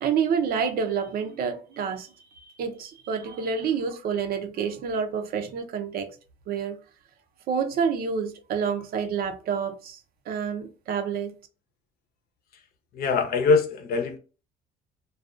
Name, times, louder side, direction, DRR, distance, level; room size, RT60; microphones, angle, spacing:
voice 1, 0.0-2.1 2.6-6.1 6.5-6.8 7.5-10.0 10.3-11.3, right 6 dB, 60° right, 0.6 m, -28 dB
voice 2, 12.9-14.2, left 4 dB, 65° left, 0.7 m, -23 dB
2.4 x 2.3 x 2.4 m
cardioid pair, 110°, 17 cm